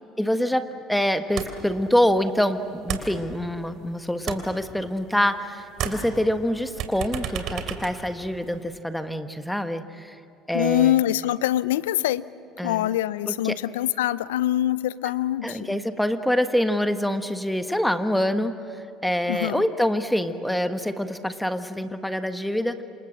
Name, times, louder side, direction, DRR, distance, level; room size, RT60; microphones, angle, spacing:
voice 1, 0.2-10.1 10.5-11.0 12.6-12.9 13.3-13.6 15.4-22.8, equal, 5° left, 8 dB, 1.5 m, -25 dB
sound 1, 1.4-1.8 2.0-3.8 4.1-5.4 5.7-8.7, right 8 dB, 60° right, 3.1 m, -34 dB
voice 2, 10.5-12.2 12.6-15.8 19.3-19.6, left 13 dB, 85° left, 19 dB, 0.5 m, -24 dB
27.5 x 27.5 x 7.7 m, 2.6 s
hypercardioid pair, 65°, 0 cm